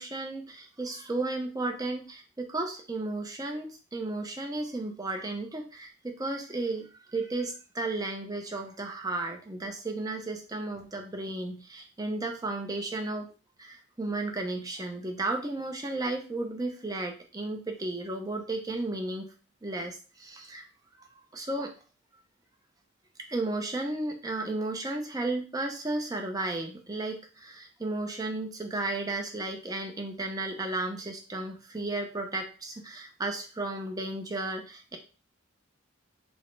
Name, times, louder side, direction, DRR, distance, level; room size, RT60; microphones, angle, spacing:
voice 1, 0.0-13.3 13.6-19.3 19.6-20.6 21.3-21.7 23.3-35.0, right 2 dB, 15° right, 3 dB, 0.5 m, -34 dB
5.2 x 2.0 x 3.2 m, 0.36 s
head